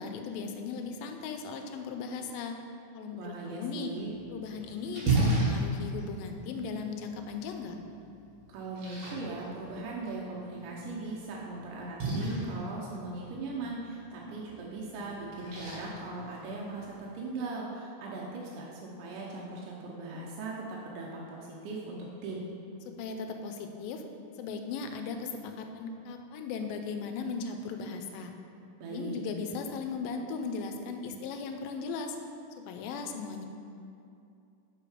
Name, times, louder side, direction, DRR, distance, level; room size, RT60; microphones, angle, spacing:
voice 1, 0.0-2.5 3.0-3.9 4.3-7.8 22.9-24.0 24.4-28.3 28.9-32.2 32.7-33.5, left 5 dB, 85° left, 5 dB, 2.3 m, -37 dB
voice 2, 3.2-4.1 8.5-22.5 28.8-29.2, right 3 dB, 75° right, -4 dB, 2.2 m, -39 dB
Splash splatter, 4.0-17.0, right 2 dB, 50° right, 2.5 m, -35 dB
6.7 x 5.3 x 4.9 m, 2.6 s
omnidirectional pair, 4.1 m